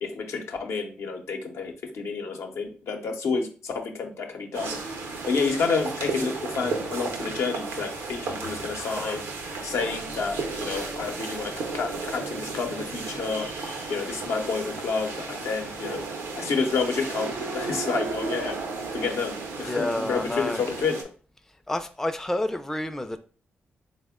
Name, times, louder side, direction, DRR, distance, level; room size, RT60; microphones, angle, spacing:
voice 1, 0.0-4.8 5.2-9.2 9.6-13.5 13.9-16.0 16.4-18.6 18.9-21.0, left 4 dB, 75° left, 3 dB, 0.6 m, -29 dB
sound 1, 4.5-21.0, right 3 dB, 85° right, 0.6 m, -34 dB
voice 2, 19.6-20.7 21.7-23.2, left 1 dB, 10° left, 8 dB, 0.4 m, -29 dB
3.4 x 2.1 x 3.5 m, 0.39 s
supercardioid pair, 45°, 5 cm